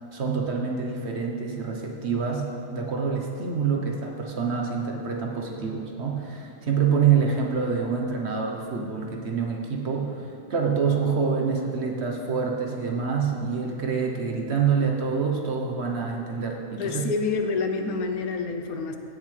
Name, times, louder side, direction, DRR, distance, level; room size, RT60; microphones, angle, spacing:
voice 1, 0.1-17.1, right 6 dB, 50° right, 1 dB, 1.1 m, -26 dB
voice 2, 16.8-19.0, left 4 dB, 75° left, 5 dB, 1.2 m, -27 dB
16.5 x 7.3 x 3.3 m, 2.5 s
omnidirectional pair, 1.5 m